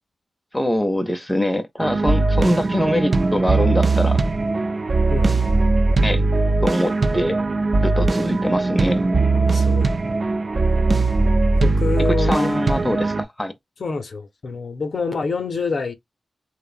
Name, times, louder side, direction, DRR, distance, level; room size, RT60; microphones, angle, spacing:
voice 1, 0.5-4.2 6.0-6.2 6.6-7.4 7.8-9.1 12.0-13.5, equal, 5° left, 0.5 m, -23 dB
sound 1, 1.8-13.2, right 3 dB, 50° right, 0.3 m, -19 dB
voice 2, 9.3-9.9 11.6-12.5 13.8-15.9, left 4 dB, 65° left, 0.5 m, -26 dB
2.9 x 2.0 x 2.4 m
cardioid pair, 60°, 0 cm